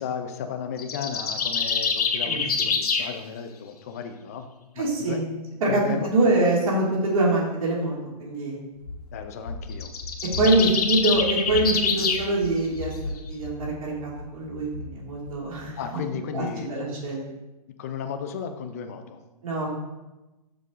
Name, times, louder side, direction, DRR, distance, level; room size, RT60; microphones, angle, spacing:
voice 1, 0.0-4.5 4.8-5.2 5.7-6.1 9.1-9.9 10.4-10.6 15.8-16.7 17.8-19.2, left 7 dB, 25° left, 7 dB, 0.5 m, -34 dB
sound 1, 0.8-3.1 9.7-12.3, left 5 dB, 65° left, 1.1 m, -25 dB
voice 2, 4.8-5.2 5.6-8.6 10.4-12.9 13.3-16.0 16.3-17.2 19.4-19.7, right 2 dB, 55° right, -4 dB, 2.5 m, -24 dB
Run, 8.8-15.8, left 3 dB, 85° left, 1.8 m, -37 dB
6.8 x 6.5 x 3.6 m, 1.0 s
hypercardioid pair, 165°, 21 cm